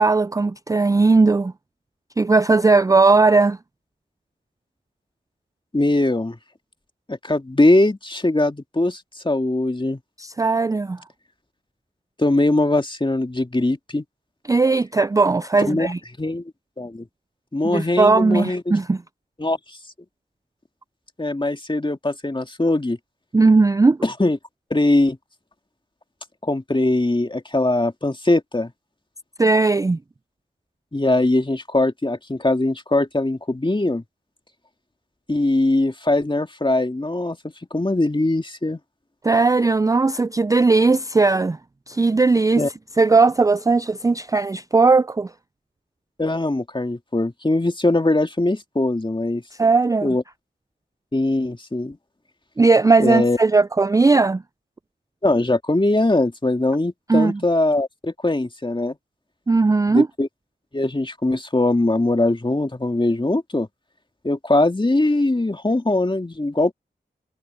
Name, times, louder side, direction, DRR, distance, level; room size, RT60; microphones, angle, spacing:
voice 1, 0.0-1.5 2.2-3.6 10.2-11.0 14.5-16.0 17.6-19.0 23.3-24.0 29.4-30.0 39.2-41.6 41.9-42.6 43.0-45.3 49.6-50.1 52.6-54.4 57.1-57.4 59.5-60.1, right 3 dB, 15° right, 0.3 m, -17 dB
voice 2, 5.7-6.4 7.1-10.0 12.2-14.0 15.6-15.9 16.2-16.4 16.8-17.1 17.5-18.7 19.4-19.8 21.2-23.0 24.0-24.4 24.7-25.2 26.4-28.7 30.9-34.0 35.3-37.4 37.7-38.8 42.6-42.7 46.2-49.4 50.0-50.2 51.1-52.0 53.0-53.4 55.2-59.0 59.9-60.3 60.7-63.7 64.2-66.7, left 2 dB, 25° left, 2.2 m, -21 dB
cardioid pair, 40°, 20 cm